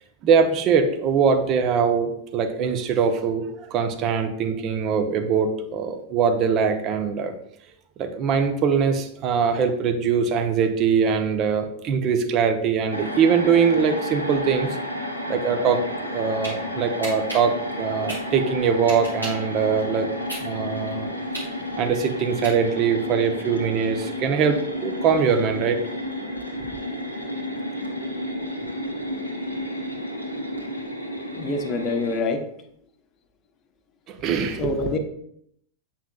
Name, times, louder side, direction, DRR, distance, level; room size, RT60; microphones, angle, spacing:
voice 1, 0.2-7.3 8.0-14.8 15.3-20.1 20.4-21.1 21.8-25.8 34.1-34.9, right 6 dB, 35° right, 7 dB, 0.8 m, -22 dB
sound 1, 12.9-32.2, left 1 dB, 85° left, 0.9 m, -31 dB
sound 2, 16.1-16.5 17.0-19.5 19.9-22.9, right 1 dB, 85° right, 2.5 m, -35 dB
voice 2, 31.4-32.4 34.6-35.0, left 3 dB, 35° left, 6 dB, 0.8 m, -25 dB
8.3 x 5.8 x 2.3 m, 0.71 s
figure-of-eight pair, 90°, 0 cm